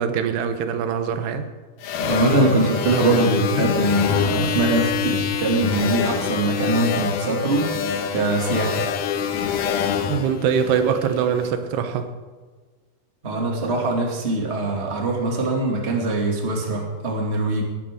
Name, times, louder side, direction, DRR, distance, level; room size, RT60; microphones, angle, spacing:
voice 1, 0.0-1.5 10.1-12.1, right 7 dB, 90° right, 8 dB, 3.1 m, -23 dB
sound 1, 1.8-11.3, left 8 dB, 70° left, 2.2 m, -25 dB
voice 2, 2.0-7.7 8.1-8.8 13.2-17.6, right 2 dB, 20° right, 0 dB, 1.9 m, -22 dB
21.0 x 11.5 x 3.7 m, 1.4 s
omnidirectional pair, 4.6 m